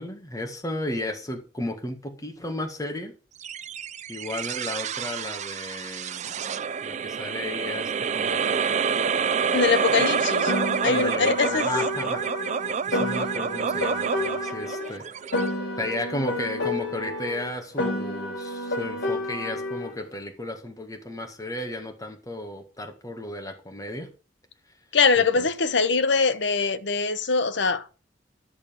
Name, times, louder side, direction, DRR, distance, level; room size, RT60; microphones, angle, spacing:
voice 1, 0.0-3.1 4.1-6.4 6.8-8.7 10.8-12.2 12.9-15.1 15.8-24.1 25.2-25.5, left 1 dB, 20° left, 1.8 m, -34 dB
sound 1, 3.4-16.0, right 6 dB, 40° right, 0.4 m, -28 dB
voice 2, 9.5-10.5 10.8-11.7 24.9-27.9, left 4 dB, 70° left, 0.9 m, -22 dB
Piano, 10.5-14.9 15.3-19.9, left 2 dB, 85° left, 3.1 m, -30 dB
11.5 x 6.8 x 5.2 m
head